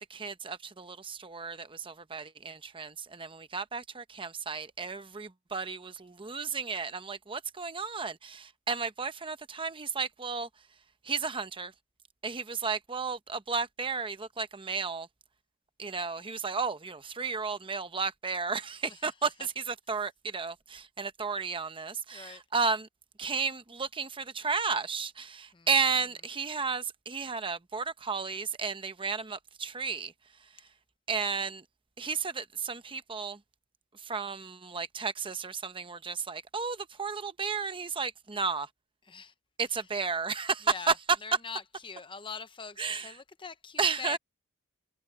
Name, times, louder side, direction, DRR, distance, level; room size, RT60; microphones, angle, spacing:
voice 1, 0.1-10.5 11.0-11.7 12.2-15.1 15.8-22.9 23.2-30.1 31.1-31.6 32.0-33.4 33.9-38.7 39.6-40.9 42.8-43.1 43.8-44.2, right 5 dB, 25° right, 0.8 m, -33 dB
voice 2, 18.9-19.3 22.1-22.4 25.5-25.7 31.3-31.5 39.0-39.3 39.7-39.9 40.6-41.0 41.2-44.2, left 5 dB, 20° left, 0.7 m, -43 dB
head